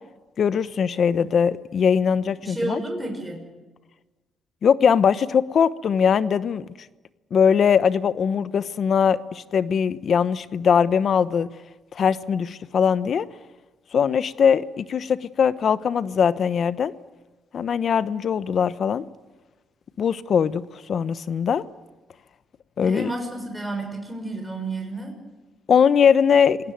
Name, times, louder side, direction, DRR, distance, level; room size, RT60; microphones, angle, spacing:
voice 1, 0.4-2.8 4.6-6.7 7.3-11.5 11.9-13.2 13.9-16.9 17.5-19.0 20.0-21.6 22.8-23.1 25.7-26.6, left 7 dB, 55° left, 15 dB, 1.0 m, -21 dB
voice 2, 2.4-3.4 22.8-25.2, right 2 dB, 5° right, 1 dB, 6.2 m, -31 dB
27.0 x 18.0 x 9.3 m, 1.2 s
cardioid pair, 90°, 0 cm